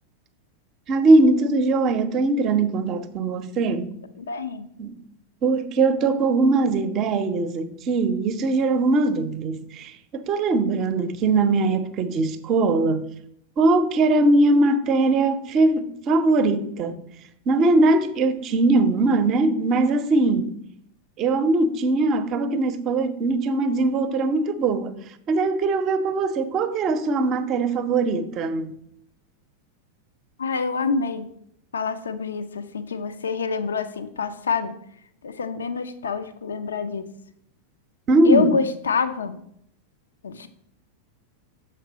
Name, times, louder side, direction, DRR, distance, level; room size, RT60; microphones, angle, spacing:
voice 1, 0.9-4.0 4.8-4.9 5.4-13.1 13.6-17.0 17.5-20.5 21.2-24.9 25.3-28.7 38.1-38.6, right 2 dB, 35° right, 0.6 m, -21 dB
voice 2, 4.2-4.7 30.4-31.3 31.7-34.7 35.2-37.1 38.2-39.4 40.2-40.5, left 5 dB, 70° left, 0.4 m, -26 dB
6.6 x 4.4 x 5.1 m
figure-of-eight pair, 90°, 0 cm